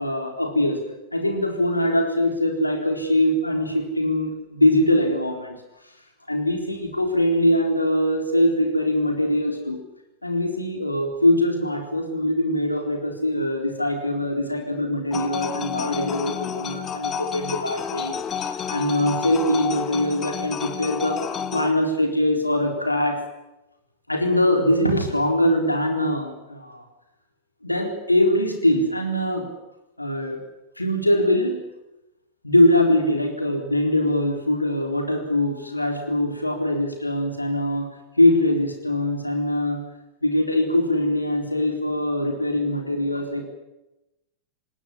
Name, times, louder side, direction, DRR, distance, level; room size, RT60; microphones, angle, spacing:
voice 1, 0.0-5.6 6.3-9.8 10.2-21.2 21.5-23.2 24.1-26.8 27.6-29.5 30.0-30.5 30.8-31.7 32.4-37.9 38.2-39.8 40.2-43.4, left 1 dB, 85° left, 4 dB, 4.1 m, -22 dB
sound 1, 15.1-21.7, left 7 dB, 25° left, 1.9 m, -30 dB
19.5 x 19.0 x 9.9 m, 0.93 s
figure-of-eight pair, 90°, 0 cm